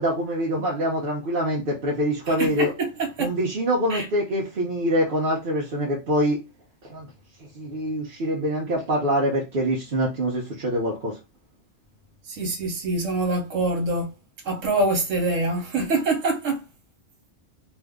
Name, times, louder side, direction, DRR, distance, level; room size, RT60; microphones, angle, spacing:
voice 1, 0.0-2.7 3.2-6.4 6.8-7.1 7.4-11.2, equal, 50° right, 0.9 m, -25 dB
voice 2, 2.3-2.9 3.2-3.3 3.9-4.1 12.3-14.1 14.4-16.6, right 2 dB, 75° right, 1.3 m, -25 dB
2.7 x 2.5 x 3.5 m
omnidirectional pair, 1.3 m